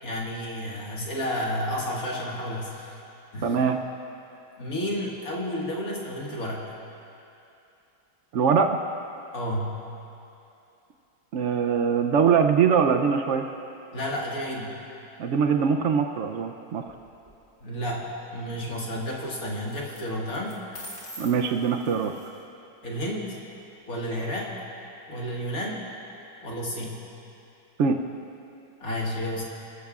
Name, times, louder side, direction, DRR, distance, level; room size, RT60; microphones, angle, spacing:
voice 1, 0.0-3.0 3.3-3.6 4.6-6.6 9.3-9.8 13.9-14.7 17.6-20.6 22.8-23.4 23.9-24.5 25.1-25.8 26.4-27.0 28.8-29.4, equal, 50° left, -4 dB, 2.3 m, -31 dB
voice 2, 3.4-3.8 8.3-8.8 11.3-13.5 15.2-16.9 21.2-22.1 27.8-28.0, right 6 dB, 85° right, 5 dB, 0.6 m, -22 dB
sound 1, 16.9-17.3 19.7-20.0 20.3-22.4, equal, 30° left, 1.9 m, -44 dB
26.0 x 14.0 x 2.4 m, 2.8 s
omnidirectional pair, 2.0 m